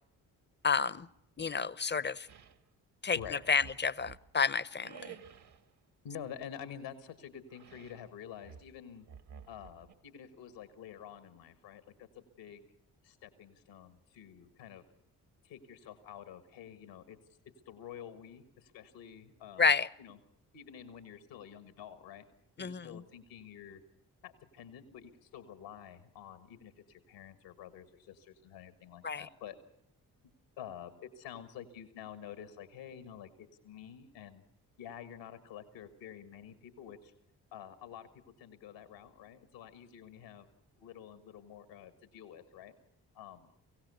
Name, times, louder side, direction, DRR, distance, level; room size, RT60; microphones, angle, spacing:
voice 1, 0.6-1.1 1.4-2.3 3.0-3.2 3.5-5.0 19.6-19.9 22.6-22.8 29.0-29.2, left 5 dB, 25° left, 0.7 m, -29 dB
sound 1, 2.3-2.6 3.1-4.3 4.8-5.7 7.5-8.1 8.4-9.9, right 8 dB, 65° right, 1.7 m, -53 dB
voice 2, 6.0-9.1 9.5-12.7 13.0-14.8 15.4-17.2 17.6-20.2 20.5-22.2 22.6-23.8 24.2-29.6 30.6-34.4 34.8-37.1 37.5-38.1 38.4-40.5 40.8-42.7 43.1-43.5, left 9 dB, 80° left, 1.7 m, -49 dB
24.0 x 16.5 x 6.9 m
hypercardioid pair, 40°, 43 cm